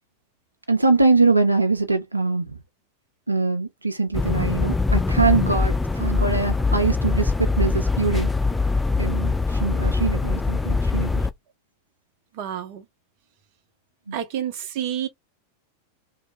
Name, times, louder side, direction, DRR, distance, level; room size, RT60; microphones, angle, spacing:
voice 1, 0.7-2.6 3.3-8.3 9.0-11.1 14.1-14.2, right 3 dB, 85° right, 0.4 m, -22 dB
sound 1, 4.1-11.3, left 3 dB, 10° left, 0.3 m, -23 dB
voice 2, 12.4-12.8 14.1-15.1, right 10 dB, 45° right, 0.7 m, -29 dB
3.0 x 2.0 x 3.1 m
figure-of-eight pair, 90°, 0 cm